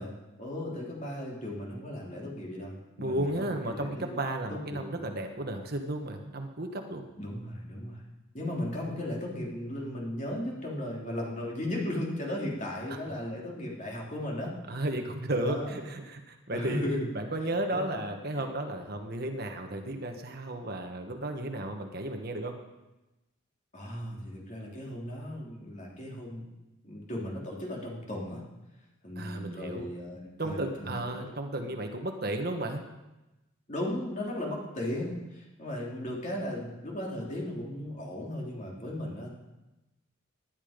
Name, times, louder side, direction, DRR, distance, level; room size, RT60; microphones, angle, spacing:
voice 1, 0.0-4.2 4.5-5.0 7.2-8.0 8.3-14.5 15.3-15.7 16.5-17.1 17.7-18.0 18.3-18.4 23.7-26.5 26.8-28.4 29.0-31.2 33.7-39.3, left 1 dB, 35° left, -3 dB, 3.3 m, -36 dB
voice 2, 3.0-7.0 12.9-13.0 14.7-16.8 17.1-22.5 29.2-29.9 30.4-32.8, right 1 dB, 45° right, 4 dB, 1.4 m, -33 dB
19.0 x 10.5 x 5.2 m, 1.0 s
head